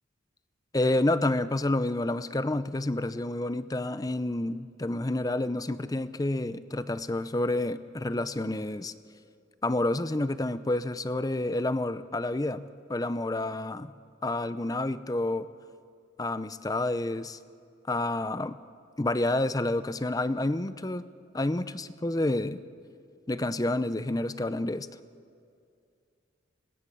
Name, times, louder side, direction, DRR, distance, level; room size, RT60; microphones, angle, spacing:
voice 1, 0.7-8.9 9.6-12.6 12.9-13.9 14.2-15.5 16.2-17.4 17.9-18.6 19.0-21.0 21.3-22.6 23.3-24.9, left 2 dB, 20° left, 13 dB, 0.6 m, -29 dB
26.0 x 19.5 x 6.9 m, 2.4 s
head